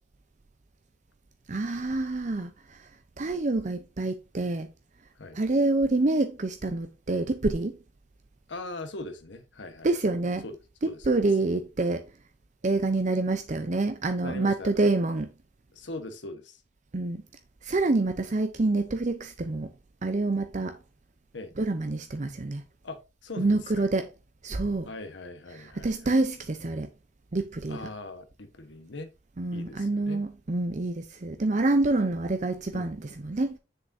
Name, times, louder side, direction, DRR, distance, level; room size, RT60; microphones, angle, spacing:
voice 1, 1.5-2.9 3.2-4.7 5.3-7.8 9.8-10.4 10.8-12.1 12.6-15.3 16.9-17.2 17.6-19.7 20.0-20.8 21.6-22.6 23.4-24.1 24.4-24.9 25.5-26.9 27.3-27.8 29.4-33.6, right 2 dB, 40° right, 0.6 m, -27 dB
voice 2, 8.5-9.9 10.4-10.5 10.8-11.2 14.2-14.7 15.7-16.6 21.3-21.5 22.8-23.7 24.8-25.9 27.7-29.1 29.5-30.2 32.7-32.9, left 2 dB, 80° left, 1.3 m, -40 dB
7.7 x 6.5 x 2.7 m
head